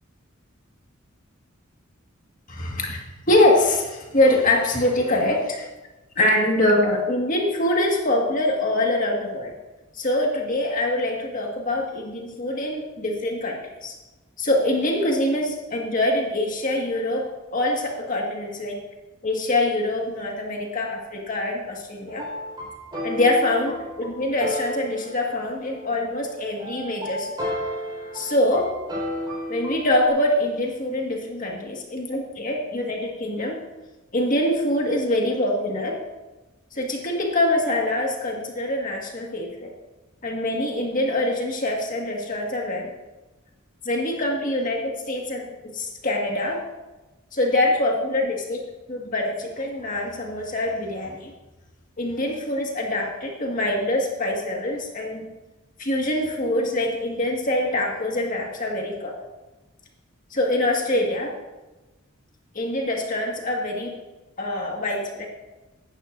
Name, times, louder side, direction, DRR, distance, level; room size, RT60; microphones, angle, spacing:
voice 1, 2.5-5.7 6.2-9.5 9.9-13.9 14.4-18.8 19.2-22.3 23.0-27.3 28.1-28.7 29.5-33.6 34.1-36.0 36.7-39.7 40.2-42.9 43.8-46.6 47.3-48.6 48.9-51.3 52.0-55.3 55.8-59.1 60.3-61.3 62.6-64.0 64.4-65.3, left 1 dB, 40° left, 0 dB, 1.8 m, -24 dB
sound 1, 22.1-30.1, equal, 20° right, 4.4 m, -33 dB
16.5 x 11.5 x 2.6 m, 1.1 s
head